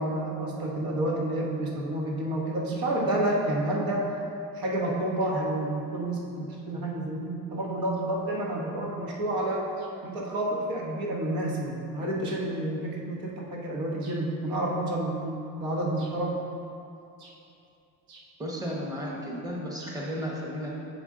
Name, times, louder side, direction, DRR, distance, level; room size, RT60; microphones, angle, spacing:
voice 1, 0.0-4.2 4.5-16.4 17.2-17.3 18.1-18.2 19.3-19.4 19.8-19.9, right 1 dB, 90° right, -2 dB, 1.3 m, -30 dB
voice 2, 18.4-20.7, equal, 10° right, -3 dB, 1.0 m, -34 dB
7.0 x 4.9 x 3.7 m, 2.7 s
cardioid pair, 130°, 35 cm